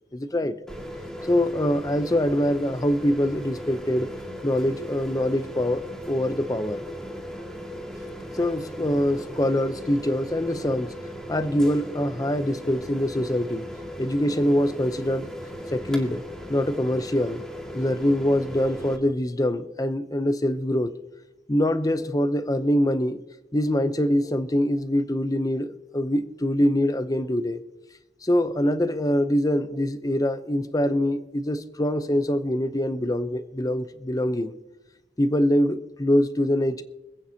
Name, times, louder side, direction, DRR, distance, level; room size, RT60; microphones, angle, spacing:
voice 1, 0.1-0.5 1.2-4.1 4.4-6.8 8.3-10.9 11.3-13.7 14.0-15.3 15.7-16.2 16.5-17.4 17.7-20.9 21.5-23.2 23.5-27.6 28.2-34.5 35.2-36.8, left 1 dB, 20° left, 0.6 m, -24 dB
sound 1, 0.7-19.0, equal, 5° left, 2.0 m, -37 dB
26.0 x 9.0 x 2.8 m
head